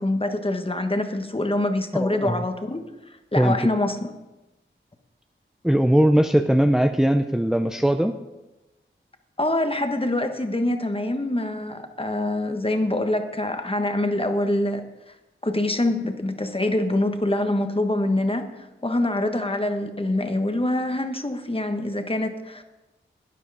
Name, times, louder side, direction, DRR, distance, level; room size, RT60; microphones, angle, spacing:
voice 1, 0.0-2.8 3.3-4.1 9.4-15.1 15.4-18.5 18.8-22.6, left 1 dB, 25° left, 7 dB, 1.3 m, -25 dB
voice 2, 1.9-2.4 3.4-3.6 5.6-8.1, equal, 5° right, 7 dB, 0.6 m, -20 dB
12.0 x 9.9 x 4.9 m, 1.0 s
wide cardioid pair, 50°, 21 cm